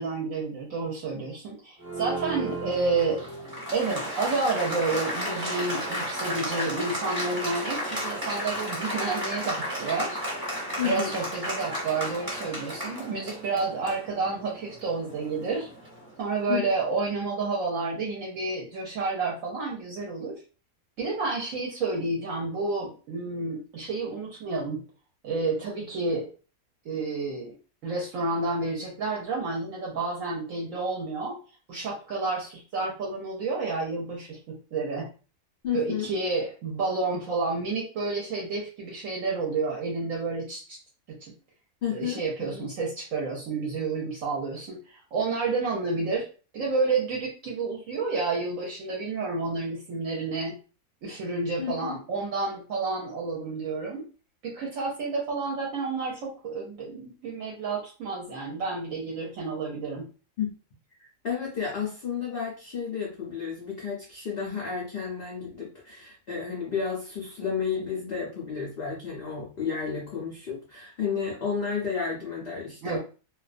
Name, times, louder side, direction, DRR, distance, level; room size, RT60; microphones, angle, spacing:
voice 1, 0.0-3.2 3.7-10.2 10.8-15.7 16.2-20.4 21.0-24.8 25.2-26.3 26.8-27.5 27.8-31.4 31.7-35.1 35.7-40.8 41.1-41.3 41.9-46.3 46.5-50.6 51.0-54.0 54.4-60.1 72.8-73.0, right 3 dB, 65° right, -2 dB, 0.9 m, -30 dB
Applause, 1.8-16.2, equal, 15° right, 0.8 m, -33 dB
voice 2, 10.8-11.2 16.5-16.7 35.6-36.1 41.8-42.7 51.6-52.0 60.4-60.5 61.0-73.0, left 7 dB, 60° left, -2 dB, 0.6 m, -32 dB
2.4 x 2.2 x 2.4 m, 0.35 s
omnidirectional pair, 1.6 m